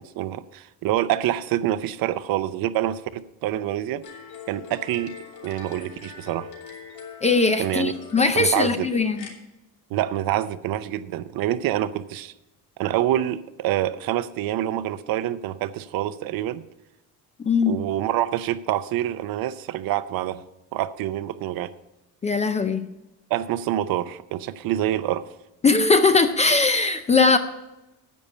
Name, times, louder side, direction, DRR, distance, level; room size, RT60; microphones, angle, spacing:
voice 1, 0.2-4.0 4.5-5.2 5.4-6.5 7.6-7.9 8.3-8.9 9.9-12.3 12.8-16.6 17.7-20.4 20.7-21.7 23.3-25.3, right 12 dB, 65° right, 14 dB, 0.7 m, -26 dB
sound 1, 4.0-9.3, left 6 dB, 75° left, 3.0 m, -43 dB
voice 2, 7.2-9.3 17.4-17.8 22.2-22.8 25.6-27.4, left 4 dB, 20° left, 9 dB, 0.3 m, -20 dB
10.5 x 8.5 x 5.4 m, 0.96 s
cardioid pair, 180°, 39 cm